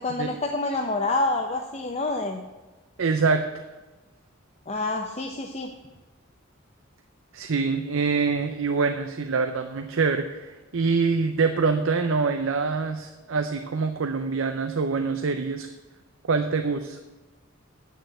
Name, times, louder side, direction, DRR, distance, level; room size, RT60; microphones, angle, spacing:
voice 1, 0.0-2.4 4.7-5.7, left 2 dB, 30° left, 3 dB, 0.7 m, -27 dB
voice 2, 3.0-3.6 7.3-15.7 16.3-17.0, right 4 dB, 70° right, 7 dB, 0.6 m, -25 dB
8.8 x 6.6 x 7.8 m, 1.2 s
head